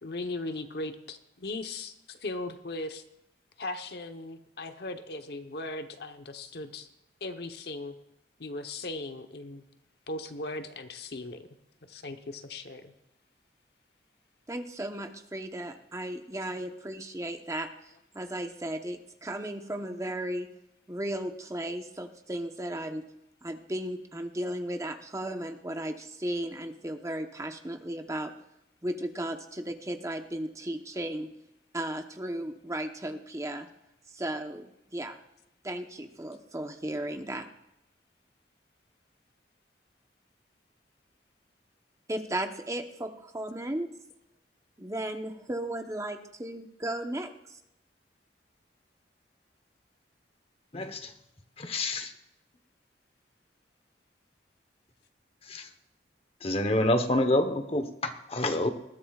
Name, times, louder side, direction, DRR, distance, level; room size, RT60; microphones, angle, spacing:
voice 1, 0.0-3.0 3.6-6.9 7.2-7.9 8.4-9.6 10.1-11.4 11.8-12.9 16.2-16.4 17.2-17.3, left 2 dB, 60° left, 7 dB, 1.0 m, -38 dB
voice 2, 14.5-20.5 20.9-23.0 23.4-28.3 28.8-31.3 31.7-33.7 34.1-35.2 35.6-37.5 42.1-43.9 44.8-47.6, right 1 dB, 20° right, 5 dB, 0.9 m, -35 dB
voice 3, 50.7-51.1 51.6-52.1 55.4-55.7 56.4-58.7, left 1 dB, 35° left, 8 dB, 1.0 m, -27 dB
20.0 x 14.0 x 2.4 m, 0.85 s
head